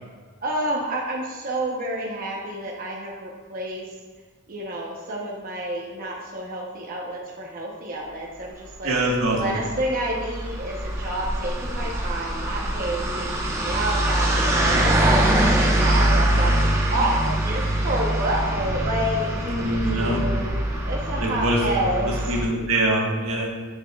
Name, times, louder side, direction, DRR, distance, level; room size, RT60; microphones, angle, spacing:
voice 1, 0.4-3.9 4.5-9.0 9.3-14.8 15.3-22.3, right 1 dB, 45° right, -3 dB, 0.9 m, -29 dB
voice 2, 8.8-9.4 19.5-20.2 21.2-21.6 22.3-23.5, right 1 dB, 80° right, -2 dB, 1.5 m, -23 dB
sound 1, 9.2-22.4, right 1 dB, 15° right, 1.0 m, -23 dB
8.2 x 7.1 x 2.4 m, 1.4 s
head